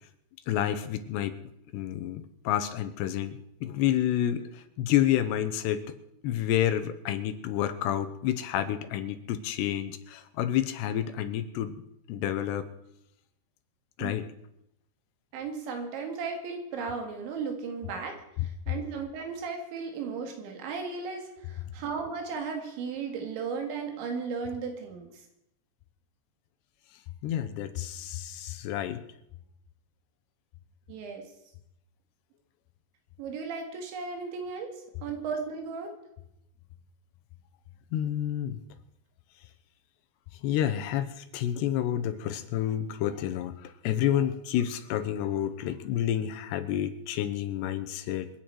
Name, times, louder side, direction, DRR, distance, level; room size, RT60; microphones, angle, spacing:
voice 1, 0.5-1.4 1.7-5.9 6.2-11.8 12.1-12.7 14.0-14.3 18.4-18.8 21.7-21.8 27.2-29.0 37.9-38.6 40.4-48.3, left 11 dB, 75° left, 10 dB, 3.0 m, -29 dB
voice 2, 15.3-25.2 30.9-31.3 33.2-34.7 35.0-35.9, right 5 dB, 85° right, 4 dB, 4.3 m, -35 dB
27.0 x 9.1 x 4.6 m, 0.81 s
omnidirectional pair, 5.1 m